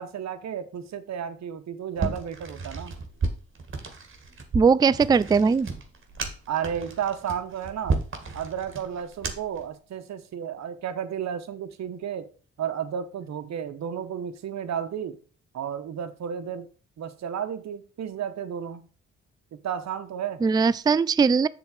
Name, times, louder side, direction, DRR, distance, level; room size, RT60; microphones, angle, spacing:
voice 1, 0.0-2.9 6.5-8.0 8.3-12.3 12.6-15.2 15.5-16.7 17.0-18.9 19.5-20.4, right 8 dB, 60° right, 1.0 m, -32 dB
sound 1, 2.0-9.6, right 4 dB, 40° right, 1.9 m, -33 dB
voice 2, 4.5-5.7 20.4-21.5, right 5 dB, 15° right, 0.3 m, -20 dB
6.9 x 3.9 x 6.4 m
supercardioid pair, 55°, 31 cm